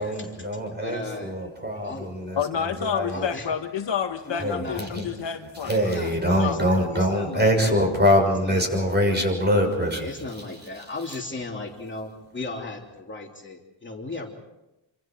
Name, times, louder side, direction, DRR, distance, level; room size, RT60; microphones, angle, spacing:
voice 1, 0.0-3.3 4.4-5.1 5.6-10.1 10.7-10.8, equal, 20° right, 3 dB, 6.4 m, -24 dB
voice 2, 0.8-1.3 1.8-2.1 3.1-3.5 4.3-4.9 5.9-7.8 8.4-8.6 9.9-14.3, left 2 dB, 25° left, 0 dB, 3.2 m, -36 dB
voice 3, 2.4-6.0 6.4-6.9, left 7 dB, 70° left, 6 dB, 1.7 m, -29 dB
27.0 x 26.0 x 4.6 m, 0.97 s
wide cardioid pair, 105°, 46 cm